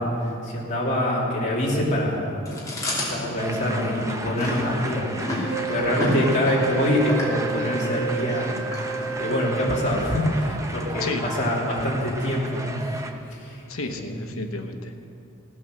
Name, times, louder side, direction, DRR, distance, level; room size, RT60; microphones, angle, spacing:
voice 1, 0.0-2.2 3.0-8.6 9.2-12.8 13.3-14.4, left 1 dB, 35° left, -5 dB, 2.8 m, -25 dB
Chewing mastication, 2.5-9.5, left 1 dB, 15° left, 2.9 m, -31 dB
sound 1, 3.4-13.1, right 2 dB, 15° right, 0.8 m, -35 dB
Wind instrument woodwind instrument, 5.5-10.2, right 5 dB, 75° right, 0.6 m, -31 dB
voice 2, 13.7-15.0, left 3 dB, 75° left, 6 dB, 1.0 m, -32 dB
16.5 x 8.6 x 6.6 m, 2.6 s
head